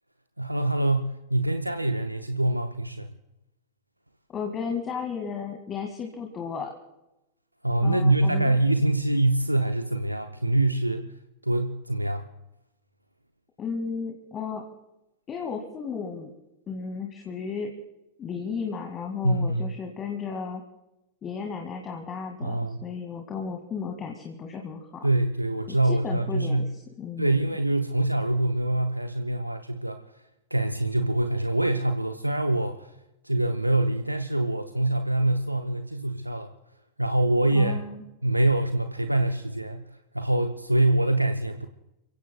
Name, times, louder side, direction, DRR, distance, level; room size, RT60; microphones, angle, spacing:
voice 1, 0.4-3.1 7.6-11.1 11.4-12.3 19.2-19.7 22.4-22.8 25.0-26.7 27.2-30.0 30.5-32.9 33.2-36.5 37.0-37.8 38.2-41.7, right 1 dB, 85° right, 7 dB, 0.7 m, -25 dB
voice 2, 4.3-6.7 7.8-8.6 13.6-14.7 15.3-16.3 16.7-17.7 18.2-20.6 21.2-25.1 25.7-26.6 27.0-27.5 37.5-38.0, left 5 dB, 25° left, 3 dB, 2.0 m, -34 dB
29.5 x 16.0 x 2.3 m, 0.91 s
figure-of-eight pair, 90°, 0 cm